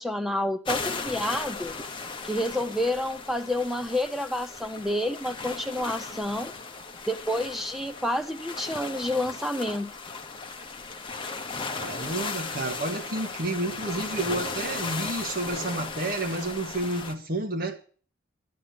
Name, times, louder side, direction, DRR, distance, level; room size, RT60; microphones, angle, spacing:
voice 1, 0.0-1.7 2.2-6.5 7.1-9.9, left 1 dB, ahead, 0.5 m, -29 dB
sound 1, 0.6-17.1, left 4 dB, 25° left, 1.1 m, -36 dB
voice 2, 11.7-17.8, right 2 dB, 50° right, 1.8 m, -30 dB
11.5 x 11.0 x 6.0 m
head